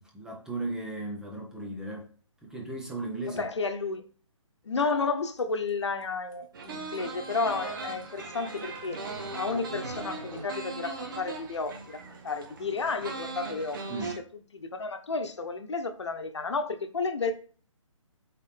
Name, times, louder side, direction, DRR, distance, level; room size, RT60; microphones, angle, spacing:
voice 1, 0.0-2.1 2.4-3.5 13.9-14.2, right 2 dB, 5° right, 0.8 m, -36 dB
voice 2, 3.3-4.0 4.6-9.0 9.3-13.8 14.5-17.3, left 4 dB, 55° left, 1.1 m, -32 dB
sound 1, 5.4-5.5 5.7-6.0 6.3-6.4 6.6-6.7 6.9-7.0 7.2-7.5 8.0-8.1 8.6-10.5, equal, 85° right, 2.5 m, -43 dB
sound 2, 6.5-14.2, right 3 dB, 40° right, 1.3 m, -39 dB
8.0 x 4.2 x 3.5 m
figure-of-eight pair, 140°, 17 cm